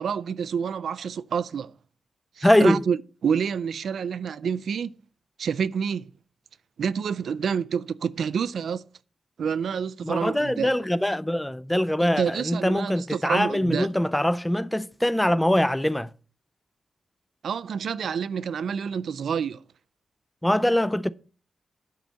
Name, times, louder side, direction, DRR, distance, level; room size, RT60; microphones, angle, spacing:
voice 1, 0.0-1.7 2.4-4.9 5.4-6.1 6.8-8.9 9.4-10.7 12.0-13.9 17.4-19.6, right 7 dB, 75° right, 0.3 m, -28 dB
voice 2, 2.4-2.8 10.0-16.1 20.4-21.1, left 1 dB, 5° left, 0.3 m, -23 dB
10.5 x 4.0 x 7.4 m
wide cardioid pair, 170°, 0 cm